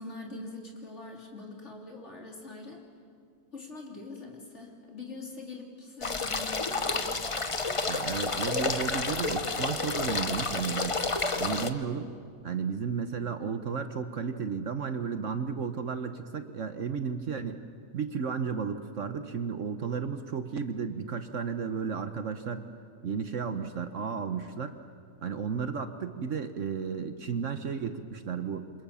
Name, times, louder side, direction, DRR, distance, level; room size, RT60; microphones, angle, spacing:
voice 1, 0.0-2.8 3.5-7.1, left 3 dB, 45° left, 1 dB, 3.7 m, -43 dB
sound 1, 6.0-11.7, left 3 dB, 25° left, 0.8 m, -30 dB
voice 2, 7.9-11.0 11.4-12.1 12.4-17.6 17.9-22.7 23.0-24.8 25.2-28.7, right 6 dB, 55° right, 9 dB, 1.2 m, -33 dB
28.5 x 26.5 x 7.0 m, 2.2 s
omnidirectional pair, 1.7 m